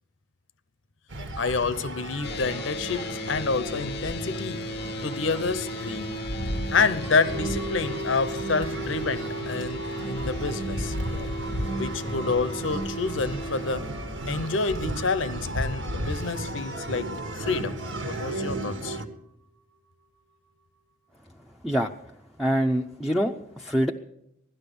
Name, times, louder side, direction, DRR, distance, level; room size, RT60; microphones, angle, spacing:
sound 1, 1.1-19.0, right 1 dB, 75° right, 1.7 m, -34 dB
voice 1, 1.4-4.7 5.0-6.2 6.7-11.0 11.7-13.9 14.3-19.0, left 4 dB, 85° left, 0.8 m, -28 dB
sound 2, 2.2-13.8, equal, 55° left, 0.6 m, -36 dB
sound 3, 7.3-17.5 17.8-17.9, right 1 dB, 60° right, 1.5 m, -41 dB
voice 2, 22.4-23.9, equal, ahead, 0.6 m, -25 dB
16.5 x 12.0 x 6.9 m
head